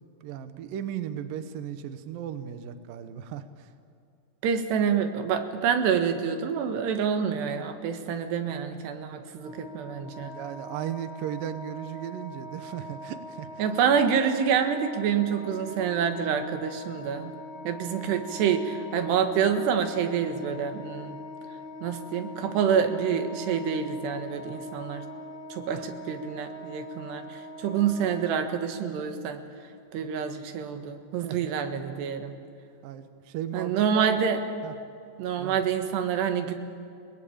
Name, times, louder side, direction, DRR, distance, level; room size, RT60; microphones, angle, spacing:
voice 1, 0.2-3.7 10.2-13.5 25.7-25.9 31.2-31.4 32.8-34.2 34.6-34.7 35.4-35.6, right 9 dB, 70° right, 10 dB, 2.5 m, -36 dB
voice 2, 4.4-10.3 13.6-17.3 17.7-21.2 21.5-25.1 25.5-32.4 33.5-34.4 35.2-36.5, right 7 dB, 85° right, 7 dB, 3.7 m, -27 dB
Wind instrument woodwind instrument, 9.3-28.8, left 1 dB, ahead, 1.9 m, -42 dB
30.0 x 19.0 x 8.7 m, 2.4 s
omnidirectional pair, 4.7 m